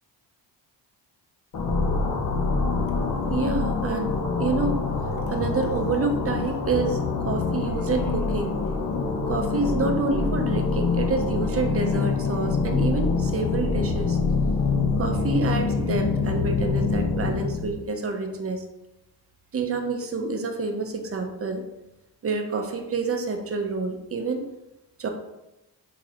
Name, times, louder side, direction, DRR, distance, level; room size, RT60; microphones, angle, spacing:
sound 1, 1.5-17.7, left 4 dB, 50° left, 0.9 m, -25 dB
voice 1, 3.3-4.8 5.3-7.0 7.3-8.6 9.3-14.2 15.0-18.6 19.5-21.6 22.2-24.4 25.0-25.1, right 4 dB, 30° right, 4 dB, 0.6 m, -28 dB
3.8 x 2.9 x 2.9 m, 0.94 s
supercardioid pair, 55°, 48 cm